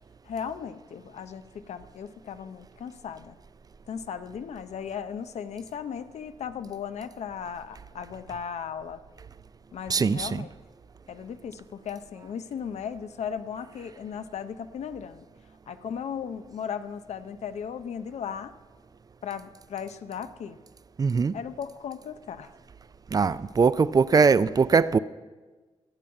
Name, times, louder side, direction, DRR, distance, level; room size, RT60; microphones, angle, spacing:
voice 1, 0.3-3.3 3.9-9.0 9.7-10.5 11.1-15.3 15.7-18.5 19.2-20.6 21.3-22.5, left 7 dB, 80° left, 0.6 m, -36 dB
voice 2, 9.9-10.5 21.0-21.3 23.1-25.0, right 5 dB, 35° right, 0.4 m, -21 dB
12.0 x 7.0 x 8.7 m
wide cardioid pair, 105°, 11 cm